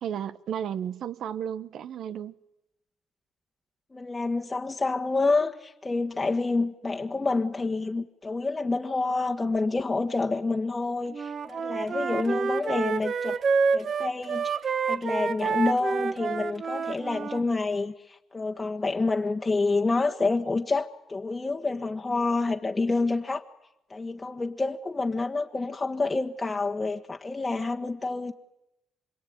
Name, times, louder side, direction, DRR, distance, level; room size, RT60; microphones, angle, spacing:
voice 1, 0.0-2.3, right 9 dB, 70° right, 1.1 m, -33 dB
voice 2, 3.9-13.4 13.7-14.5 14.8-23.4 23.9-28.3, left 3 dB, 20° left, 1.5 m, -28 dB
Wind instrument woodwind instrument, 11.1-17.4, right 5 dB, 50° right, 1.1 m, -28 dB
26.5 x 22.5 x 9.4 m
cardioid pair, 90°, 0 cm